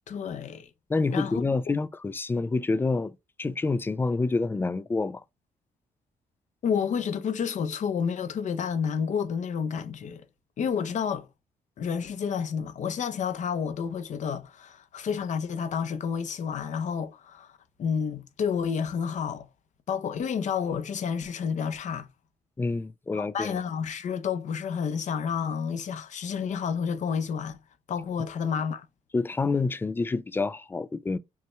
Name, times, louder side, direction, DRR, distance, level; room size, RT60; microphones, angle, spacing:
voice 1, 0.1-0.7 1.1-1.4 6.6-10.3 10.6-11.3 11.8-19.5 19.9-22.1 23.1-27.6 27.9-28.9, left 7 dB, 55° left, 0.7 m, -30 dB
voice 2, 0.9-3.1 3.4-5.2 22.6-23.6 29.1-31.2, left 3 dB, 15° left, 0.3 m, -27 dB
5.4 x 2.3 x 3.0 m
cardioid pair, 125°, 15 cm